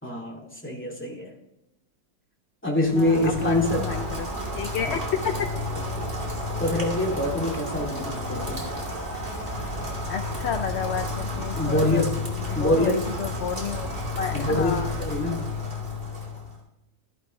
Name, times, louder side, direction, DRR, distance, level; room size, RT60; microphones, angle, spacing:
voice 1, 0.0-1.3 2.6-3.8 4.9-5.0 6.6-8.6 11.5-12.1 12.5-13.0 14.3-15.5, left 1 dB, 5° left, -1 dB, 2.7 m, -25 dB
Rain, 2.8-16.6, left 2 dB, 30° right, 2.7 m, -31 dB
voice 2, 2.9-4.3 4.5-5.3 10.1-13.9 14.2-14.9, left 7 dB, 65° left, 7 dB, 0.6 m, -31 dB
13.5 x 11.0 x 3.3 m, 0.91 s
omnidirectional pair, 1.8 m